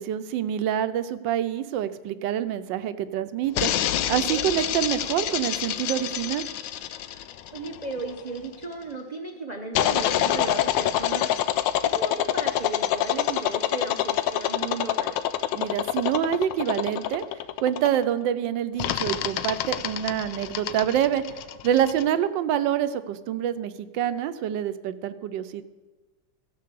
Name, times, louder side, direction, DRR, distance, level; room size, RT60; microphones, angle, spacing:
voice 1, 0.0-3.7 4.1-6.5 15.5-17.2 17.6-21.2 21.6-25.6, right 10 dB, 80° right, 12 dB, 1.3 m, -26 dB
sound 1, 3.6-8.5 9.8-18.1 18.8-22.0, left 12 dB, 80° left, 1.3 m, -26 dB
voice 2, 7.5-11.3 11.8-15.2, right 3 dB, 45° right, 2 dB, 0.5 m, -35 dB
16.0 x 6.6 x 6.8 m, 1.3 s
omnidirectional pair, 2.0 m